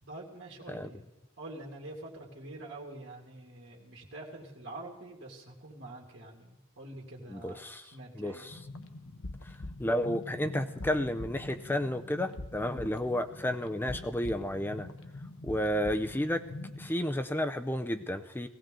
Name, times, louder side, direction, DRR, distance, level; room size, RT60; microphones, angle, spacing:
voice 1, 0.0-1.1 1.4-8.4, right 2 dB, 60° right, -1 dB, 2.6 m, -46 dB
voice 2, 7.3-7.8 8.1-8.6 9.4-9.5 9.8-14.9 15.4-16.4 16.8-18.5, left 1 dB, 10° left, 8 dB, 0.5 m, -32 dB
sound 1, 8.5-16.9, left 2 dB, 70° left, 1.0 m, -44 dB
18.0 x 16.0 x 3.8 m, 1.0 s
head